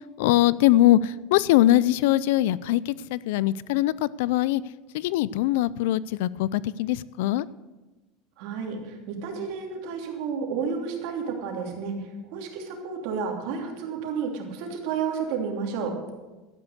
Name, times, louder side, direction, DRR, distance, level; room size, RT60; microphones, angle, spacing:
voice 1, 0.2-4.6 4.9-7.5, left 14 dB, 80° left, 20 dB, 0.4 m, -22 dB
voice 2, 8.4-16.1, right 5 dB, 65° right, 2 dB, 2.9 m, -31 dB
12.5 x 9.8 x 6.6 m, 1.2 s
supercardioid pair, 135°, 0 cm